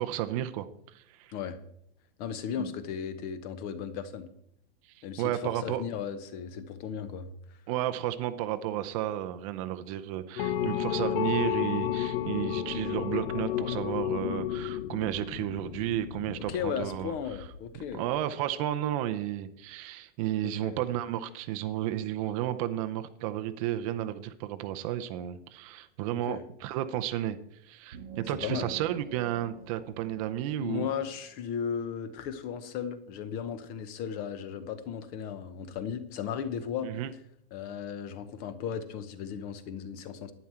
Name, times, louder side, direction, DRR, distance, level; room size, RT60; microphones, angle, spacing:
voice 1, 0.0-1.3 2.6-2.7 4.9-5.8 7.7-17.1 17.7-27.4 27.6-30.9 36.8-37.1, right 12 dB, 35° right, 10 dB, 0.7 m, -32 dB
voice 2, 2.2-4.3 5.0-7.6 16.4-18.1 20.4-20.8 26.1-26.4 28.4-28.7 30.6-36.9 37.5-40.3, left 7 dB, 30° left, 12 dB, 0.9 m, -36 dB
sound 1, 10.4-17.9, left 10 dB, 75° left, 0.8 m, -32 dB
sound 2, 27.9-31.5, right 7 dB, 70° right, 1.2 m, -48 dB
11.0 x 9.3 x 4.4 m, 0.72 s
hypercardioid pair, 150°, 30 cm